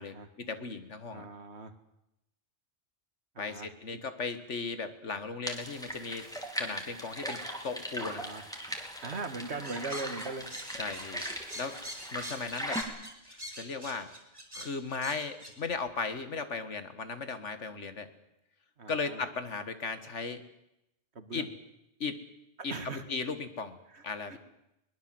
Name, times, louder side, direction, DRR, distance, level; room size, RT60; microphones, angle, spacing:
voice 1, 0.0-1.3 3.4-6.3 6.6-8.3 10.8-11.3 11.6-11.8 12.1-12.8 13.3-14.1 14.5-18.1 18.9-20.4 21.3-21.5 22.0-22.2 22.6-22.7 23.1-23.8 24.0-24.4, left 4 dB, 75° left, 10 dB, 2.0 m, -36 dB
voice 2, 1.1-1.7 3.3-4.0 8.0-8.4 9.0-10.4 18.8-19.2 21.1-21.5 22.7-23.0 23.9-24.4, right 3 dB, 65° right, 9 dB, 2.1 m, -40 dB
sound 1, 5.5-12.8, equal, 5° left, 3.0 m, -39 dB
sound 2, 9.6-15.5, equal, 20° right, 4.1 m, -44 dB
22.5 x 20.5 x 7.8 m, 0.85 s
omnidirectional pair, 1.2 m